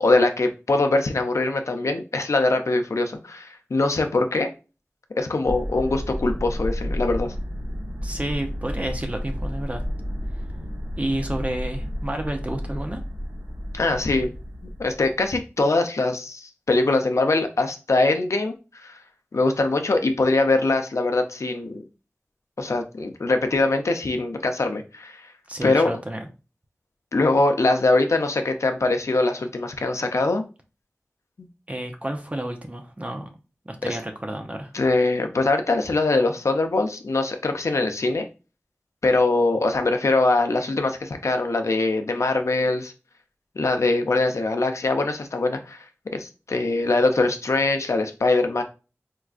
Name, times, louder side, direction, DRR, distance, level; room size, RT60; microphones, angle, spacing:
voice 1, 0.0-4.5 5.2-7.3 13.7-14.3 14.8-19.0 19.3-21.8 22.6-25.3 25.6-25.9 27.1-30.4 33.9-34.0 34.7-38.3 39.0-42.9 43.6-45.8 46.1-48.6, left 2 dB, 75° left, 6 dB, 0.5 m, -22 dB
sound 1, 5.4-15.4, equal, 70° right, 1.7 m, -31 dB
voice 2, 8.0-9.8 11.0-13.0 25.5-26.3 31.7-33.3 33.7-34.7, right 1 dB, 30° right, 4 dB, 0.6 m, -30 dB
4.5 x 2.3 x 2.4 m, 0.32 s
wide cardioid pair, 60°, 5 cm